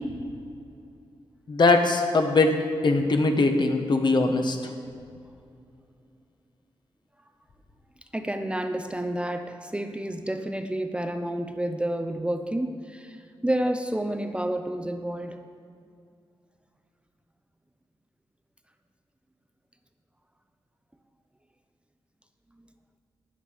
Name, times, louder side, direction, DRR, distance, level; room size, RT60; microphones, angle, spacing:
voice 1, 1.5-2.5 2.8-4.6, left 3 dB, 50° left, 5 dB, 1.2 m, -21 dB
voice 2, 8.1-13.2 13.4-15.4, right 1 dB, 10° right, 7 dB, 0.6 m, -29 dB
13.0 x 9.5 x 5.1 m, 2.4 s
cardioid pair, 85°, 10 cm